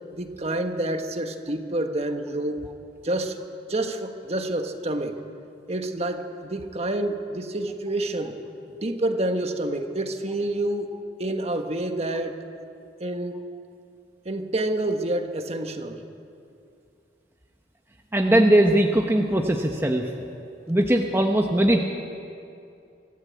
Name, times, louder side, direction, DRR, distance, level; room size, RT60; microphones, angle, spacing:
voice 1, 0.1-2.6 3.0-3.4 3.7-5.2 5.7-8.4 8.8-12.4 13.0-13.4 14.2-16.0, right 1 dB, 35° right, 6 dB, 1.5 m, -28 dB
voice 2, 18.1-20.1 20.7-21.8, right 1 dB, 15° right, 2 dB, 1.1 m, -20 dB
25.5 x 14.0 x 8.4 m, 2.5 s
head